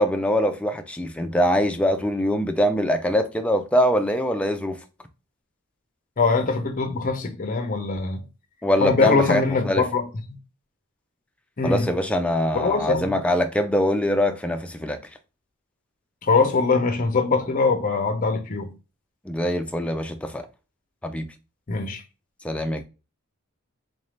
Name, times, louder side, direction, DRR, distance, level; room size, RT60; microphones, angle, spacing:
voice 1, 0.0-4.8 8.6-9.8 11.6-15.0 19.3-20.5 21.0-21.3 22.4-22.8, equal, 5° left, 0.3 m, -23 dB
voice 2, 6.2-8.2 8.8-10.0 11.6-11.9 12.5-13.1 16.2-18.7 21.7-22.0, left 4 dB, 40° left, 0.6 m, -22 dB
3.8 x 2.6 x 3.2 m
head